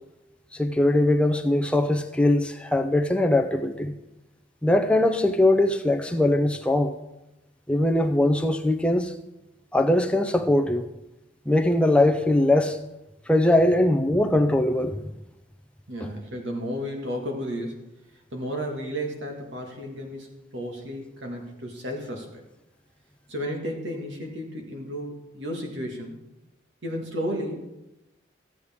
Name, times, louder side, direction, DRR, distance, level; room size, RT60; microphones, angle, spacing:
voice 1, 0.5-3.9 4.6-6.9 7.7-9.1 9.7-10.9 11.5-12.8 13.3-15.1, left 1 dB, 5° left, 0.5 m, -21 dB
voice 2, 15.9-17.8 18.3-20.3 20.5-22.4 23.3-26.2 26.8-27.6, equal, 70° right, 1.8 m, -33 dB
14.0 x 8.0 x 3.6 m
head